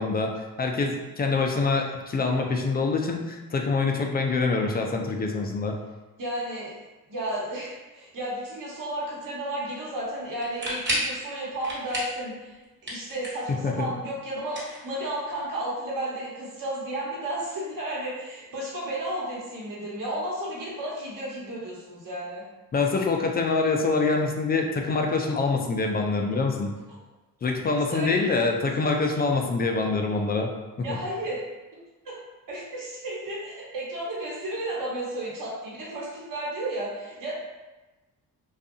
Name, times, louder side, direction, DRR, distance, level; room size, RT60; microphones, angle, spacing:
voice 1, 0.0-5.8 13.5-13.9 22.7-26.7 27.4-30.5, left 3 dB, 25° left, 2 dB, 0.3 m, -25 dB
voice 2, 6.2-6.8 7.1-12.6 12.8-22.4 27.9-28.2 30.8-31.4 32.0-32.1 32.5-37.3, right 1 dB, 55° right, -5 dB, 1.1 m, -33 dB
sound 1, 10.4-11.2 11.6-12.2 12.5-13.5 14.4-15.4, equal, 30° right, 1.0 m, -31 dB
2.6 x 2.4 x 2.5 m, 1.1 s
cardioid pair, 70°, 38 cm